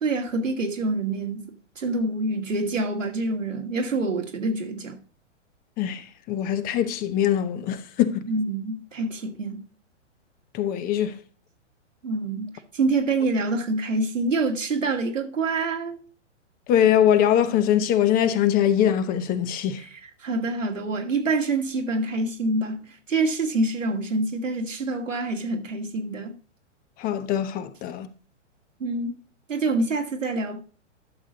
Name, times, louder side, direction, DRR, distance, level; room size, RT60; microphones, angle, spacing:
voice 1, 0.0-5.0 8.3-9.6 12.0-16.0 19.8-26.3 28.8-29.2 29.5-30.6, right 3 dB, 90° right, 2.3 m, -26 dB
voice 2, 6.3-8.3 10.5-11.2 16.7-19.8 27.0-28.1, left 10 dB, 25° left, 0.8 m, -22 dB
12.0 x 6.5 x 4.0 m
hypercardioid pair, 120°, 37 cm